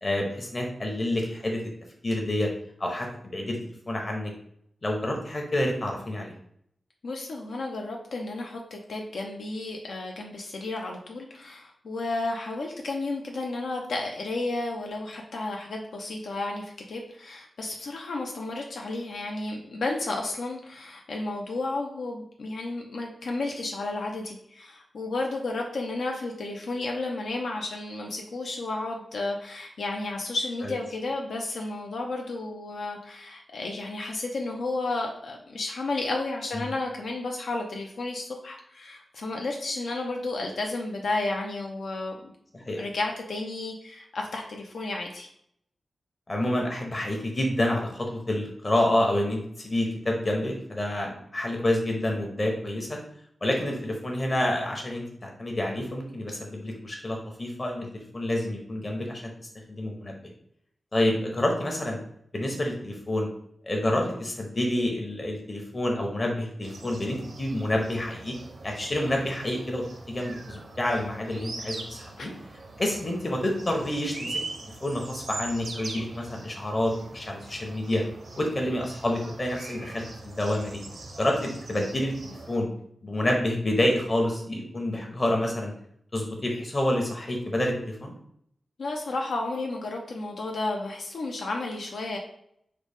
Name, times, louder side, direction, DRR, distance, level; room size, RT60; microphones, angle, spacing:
voice 1, 0.0-1.6 2.0-2.5 2.8-3.6 3.9-4.3 4.8-6.3 30.6-30.7 36.5-36.7 42.5-42.8 46.3-53.0 53.4-60.2 60.9-62.0 62.3-63.3 63.6-68.3 68.6-72.3 72.8-78.0 78.4-80.8 81.2-82.7 83.0-85.7 86.1-88.1, left 1 dB, 35° left, 1 dB, 0.8 m, -28 dB
voice 2, 7.0-42.3 42.8-45.3 88.8-92.2, left 2 dB, 85° left, 1 dB, 0.4 m, -32 dB
sound 1, 66.6-82.6, right 3 dB, 75° right, 0.5 m, -42 dB
3.8 x 2.0 x 3.4 m, 0.70 s
wide cardioid pair, 80°, 0 cm